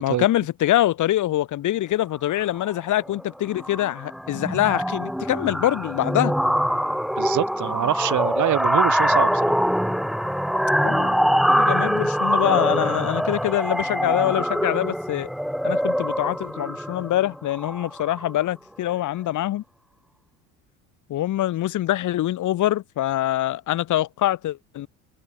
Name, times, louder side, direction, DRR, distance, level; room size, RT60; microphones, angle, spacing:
voice 1, 0.0-6.4 10.8-15.3 15.6-19.6 21.1-24.9, left 13 dB, 45° left, 1.8 m, -24 dB
sound 1, 2.4-2.7 3.0-3.3 3.5-18.4, equal, ahead, 7.7 m, -24 dB
voice 2, 7.2-9.4, right 12 dB, 40° right, 2.6 m, -25 dB
figure-of-eight pair, 60°, 43 cm